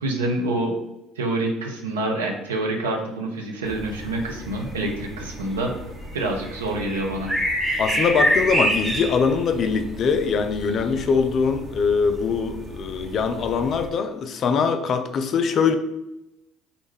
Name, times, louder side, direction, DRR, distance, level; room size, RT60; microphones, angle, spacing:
voice 1, 0.0-0.8 1.2-5.7 6.1-7.3, right 2 dB, 80° right, 1 dB, 0.4 m, -26 dB
sound 1, 3.6-13.9, equal, 15° right, 0.9 m, -29 dB
voice 2, 7.8-15.7, left 5 dB, 50° left, 8 dB, 0.3 m, -22 dB
2.5 x 2.2 x 3.2 m, 0.91 s
figure-of-eight pair, 55°, 0 cm